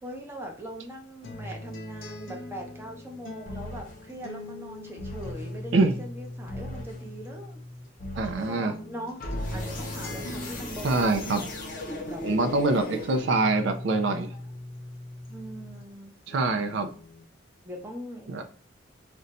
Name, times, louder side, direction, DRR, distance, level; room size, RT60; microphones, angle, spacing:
voice 1, 0.0-7.6 8.4-9.2 9.5-11.2 11.9-12.3 12.9-13.1 14.1-14.4 15.3-16.1 17.6-18.4, equal, 15° right, 1 dB, 0.6 m, -41 dB
sound 1, 1.2-7.9 8.3-15.9 16.3-17.2, left 2 dB, 85° left, 0.7 m, -41 dB
sound 2, 3.5-4.0 5.0-5.5 6.5-7.0 8.0-8.5 9.2-13.6, left 1 dB, 45° left, 0.6 m, -37 dB
voice 2, 8.2-8.7 10.8-11.4 12.2-14.3 16.3-16.9 18.3-18.4, right 3 dB, 70° right, 8 dB, 0.4 m, -24 dB
2.5 x 2.2 x 4.0 m, 0.42 s
head